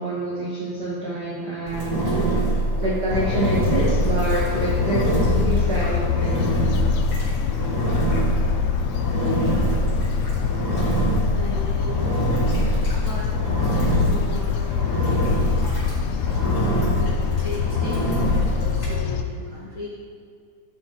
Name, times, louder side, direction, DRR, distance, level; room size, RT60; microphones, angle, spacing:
voice 1, 0.0-2.0 2.8-6.4 16.6-16.9, right 1 dB, 70° right, -6 dB, 0.9 m, -26 dB
Engine, 1.7-19.0, right 2 dB, 30° left, 2.7 m, -25 dB
sound 1, 3.1-19.2, left 8 dB, 85° left, 1.6 m, -25 dB
voice 2, 9.4-9.8 11.3-12.2 12.9-15.7 16.4-17.1 17.4-19.9, left 2 dB, 65° left, -7 dB, 1.3 m, -37 dB
12.0 x 6.3 x 3.7 m, 2.1 s
omnidirectional pair, 3.7 m